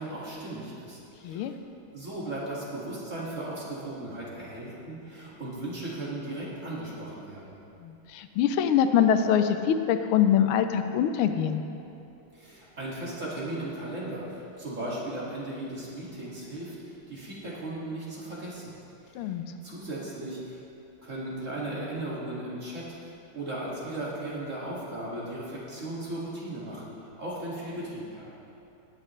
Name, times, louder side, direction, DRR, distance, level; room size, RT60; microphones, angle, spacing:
voice 1, 0.0-1.4 1.9-7.6 12.3-18.8 19.0-20.6 21.0-28.3, right 1 dB, 35° right, -7 dB, 2.4 m, -37 dB
voice 2, 7.8-11.6 19.1-19.4, left 9 dB, 90° left, 8 dB, 1.5 m, -24 dB
18.0 x 8.4 x 3.2 m, 2.8 s
omnidirectional pair, 2.3 m